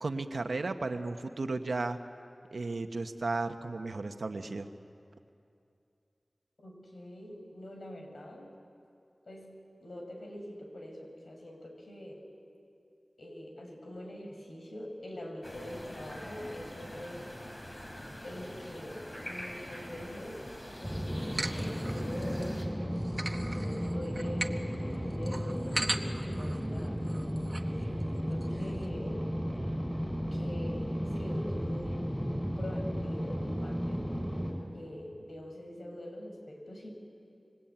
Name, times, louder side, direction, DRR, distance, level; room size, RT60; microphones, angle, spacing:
voice 1, 0.0-2.0 2.5-4.7, right 3 dB, 80° right, 6 dB, 1.3 m, -34 dB
voice 2, 6.6-8.5 9.3-12.3 13.2-17.3 18.2-22.7 23.3-27.0 27.7-27.9 28.3-29.3 30.3-34.1 34.7-36.9, left 1 dB, 80° left, 2 dB, 5.5 m, -44 dB
sound 1, 15.4-22.7, left 1 dB, 35° left, 4.3 m, -44 dB
sound 2, 20.8-34.5, equal, ahead, 6.0 m, -34 dB
sound 3, 21.2-22.5 22.9-27.7 28.0-28.1 28.3-28.9, right 2 dB, 40° right, 1.4 m, -39 dB
26.0 x 24.5 x 9.0 m, 2.6 s
wide cardioid pair, 70°, 0 cm